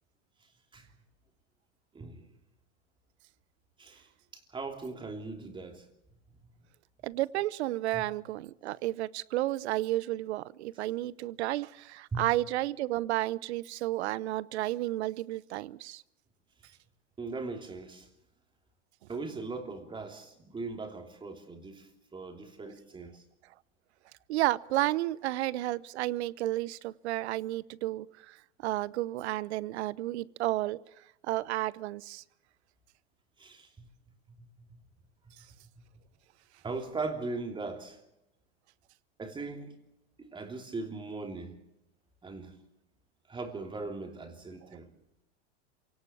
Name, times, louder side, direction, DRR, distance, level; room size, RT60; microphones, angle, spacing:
voice 1, 1.9-2.2 3.8-4.1 4.5-5.9 7.9-8.0 12.1-12.2 17.2-18.1 19.1-23.2 33.4-33.9 34.3-34.8 35.2-35.3 36.6-38.0 39.2-39.8 40.2-41.5 42.2-42.6 43.3-44.9, right 3 dB, 15° right, 3.1 m, -39 dB
voice 2, 7.0-16.0 24.3-28.4 28.6-30.8 31.2-32.2, right 16 dB, 65° right, 0.8 m, -32 dB
27.0 x 18.0 x 7.2 m
hypercardioid pair, 135°, 36 cm